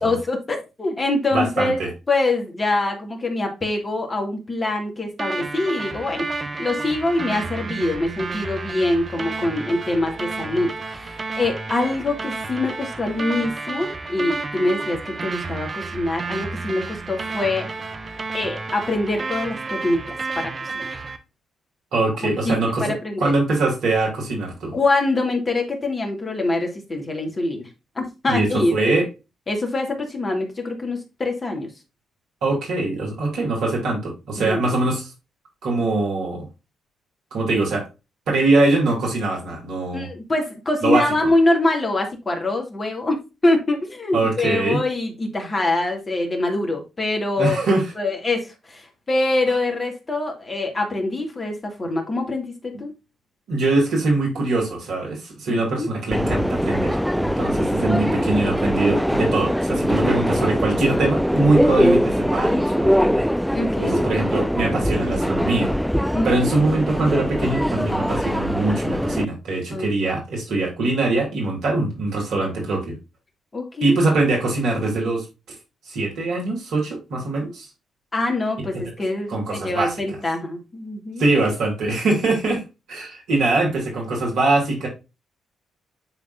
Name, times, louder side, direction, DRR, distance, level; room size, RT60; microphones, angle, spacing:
voice 1, 0.0-6.3 6.6-17.7 18.3-21.0 22.2-23.3 24.7-27.6 27.9-28.7 29.5-31.7 34.4-34.8 39.9-47.6 48.0-52.9 55.5-55.9 57.5-57.9 63.5-64.1 66.1-66.5 69.7-69.9 73.5-74.0 78.1-81.3, left 2 dB, 30° left, 2.4 m, -24 dB
voice 2, 1.3-1.9 21.9-22.9 23.2-24.7 28.3-29.1 32.4-35.1 35.6-36.4 37.3-37.8 38.3-40.1 40.8-41.0 44.1-44.8 47.4-47.9 53.5-63.2 63.8-65.7 66.2-73.0 73.8-75.3 75.8-77.7 78.6-78.7 79.3-79.9 81.2-82.6 82.9-84.9, right 2 dB, 70° right, 2.9 m, -22 dB
sound 1, 5.2-21.2, right 3 dB, 40° right, 1.0 m, -31 dB
Subway metro underground, 56.1-69.2, equal, ahead, 0.3 m, -22 dB
10.0 x 3.6 x 2.6 m
hypercardioid pair, 45°, 0 cm